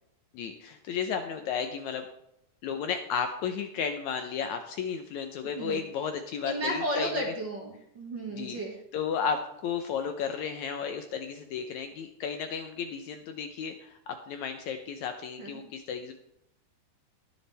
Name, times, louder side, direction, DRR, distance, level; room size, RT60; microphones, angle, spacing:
voice 1, 0.3-2.1 2.6-7.2 8.3-8.6 8.9-16.1, left 6 dB, 70° left, 6 dB, 1.9 m, -33 dB
voice 2, 6.4-8.7 15.4-15.6, right 1 dB, 40° right, -1 dB, 1.9 m, -33 dB
21.0 x 7.1 x 3.4 m, 0.75 s
omnidirectional pair, 3.9 m